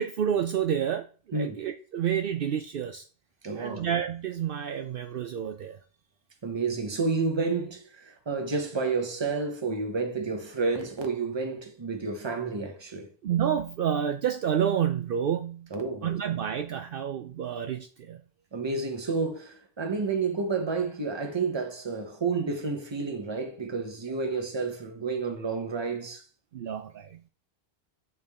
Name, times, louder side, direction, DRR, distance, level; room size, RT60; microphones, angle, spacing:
voice 1, 0.0-3.0 3.5-5.8 13.2-15.7 16.0-18.2 26.5-27.2, right 9 dB, 65° right, 0.7 m, -29 dB
voice 2, 1.3-1.7 3.4-3.9 6.4-13.1 15.7-16.1 18.5-26.2, right 4 dB, 25° right, 0.9 m, -30 dB
8.6 x 3.5 x 3.5 m
omnidirectional pair, 1.1 m